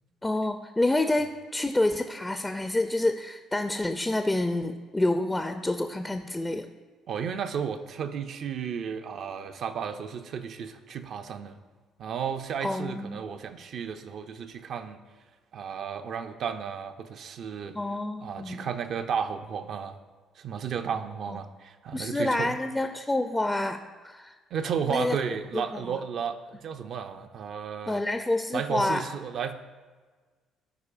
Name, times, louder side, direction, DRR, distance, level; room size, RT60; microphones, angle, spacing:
voice 1, 0.2-6.7 12.6-13.2 17.7-18.6 21.3-21.4 21.9-24.3 24.9-25.2 25.5-26.0 27.9-29.0, left 2 dB, 15° left, 7 dB, 0.4 m, -28 dB
voice 2, 7.1-11.6 12.0-15.0 15.5-17.8 18.2-20.0 20.4-22.6 24.5-28.0 28.5-29.5, right 7 dB, 60° right, 8 dB, 0.5 m, -33 dB
13.0 x 4.7 x 2.5 m, 1.4 s
hypercardioid pair, 55°, 0 cm